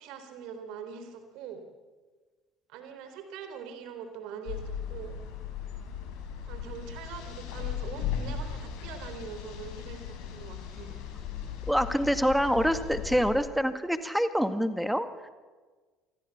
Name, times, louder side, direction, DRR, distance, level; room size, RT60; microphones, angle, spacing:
voice 1, 0.0-1.6 2.7-5.2 6.4-11.0, right 7 dB, 60° right, 8 dB, 3.6 m, -43 dB
sound 1, 4.4-13.3, left 8 dB, 60° left, 4.8 m, -37 dB
voice 2, 11.7-15.3, equal, ahead, 11 dB, 1.9 m, -26 dB
27.5 x 20.5 x 7.2 m, 1.4 s
figure-of-eight pair, 60°, 0 cm